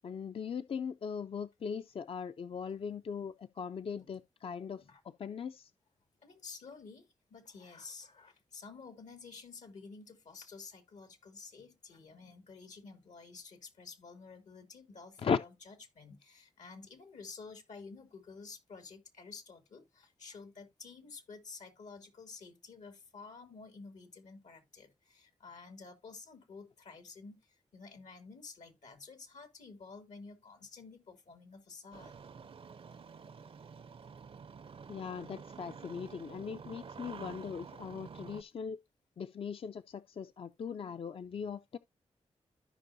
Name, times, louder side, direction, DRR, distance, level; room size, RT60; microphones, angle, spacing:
voice 1, 0.0-5.7 15.2-15.4 34.9-38.8 39.2-41.8, left 6 dB, 50° left, 0.4 m, -39 dB
voice 2, 3.8-4.2 4.7-5.0 6.2-32.1, left 4 dB, 85° left, 2.1 m, -51 dB
Engine starting, 31.9-38.4, right 6 dB, 50° right, 0.5 m, -49 dB
14.0 x 5.3 x 2.6 m
cardioid pair, 60°, 12 cm